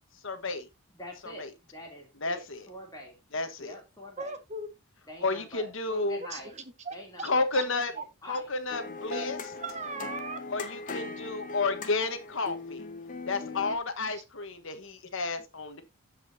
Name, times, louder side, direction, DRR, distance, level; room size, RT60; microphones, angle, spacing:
voice 1, 0.2-0.7 1.4-1.5 2.2-2.6 3.3-3.7 5.2-6.2 7.2-7.9 8.3-9.4 10.5-12.9 13.3-15.8, left 3 dB, 60° left, 1.4 m, -31 dB
voice 2, 0.9-3.2 3.6-4.4 5.1-6.5 6.9-8.5 13.3-13.7, left 1 dB, 20° left, 2.9 m, -46 dB
voice 3, 4.2-4.7 6.3-7.6 8.0-8.1 9.1-9.3 9.6-10.4, right 3 dB, 30° right, 1.1 m, -39 dB
sound 1, 8.7-13.8, left 3 dB, 35° left, 1.1 m, -39 dB
15.0 x 5.3 x 2.7 m
head